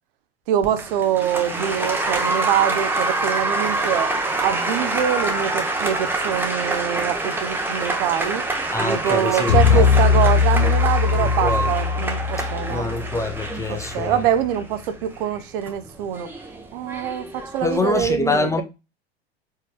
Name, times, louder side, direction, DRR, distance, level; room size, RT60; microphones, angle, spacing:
voice 1, 0.5-4.1 4.4-8.4 8.8-12.8 13.7-16.3 16.7-18.6, right 10 dB, 55° right, 0.7 m, -24 dB
Applause, 0.6-17.8, right 2 dB, 5° right, 0.9 m, -26 dB
voice 2, 8.7-9.9 10.6-10.8 11.2-11.7 12.4-14.2 17.6-18.6, left 3 dB, 10° left, 0.5 m, -25 dB
sound 1, 9.5-13.8, left 6 dB, 75° left, 0.5 m, -20 dB
4.6 x 4.6 x 2.2 m
figure-of-eight pair, 85°, 32 cm